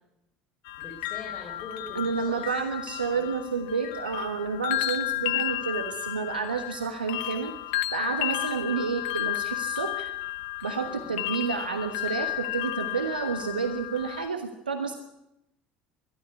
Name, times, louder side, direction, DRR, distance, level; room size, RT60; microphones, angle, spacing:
sound 1, 0.7-14.3, left 15 dB, 65° left, 0.7 m, -33 dB
voice 1, 0.8-2.6 3.1-3.2 10.9-11.2, left 3 dB, 35° left, 0 dB, 5.2 m, -43 dB
voice 2, 1.9-7.5 7.9-10.1 10.6-14.9, right 5 dB, 85° right, 6 dB, 1.3 m, -30 dB
22.0 x 12.5 x 9.6 m, 0.86 s
figure-of-eight pair, 65°, 5 cm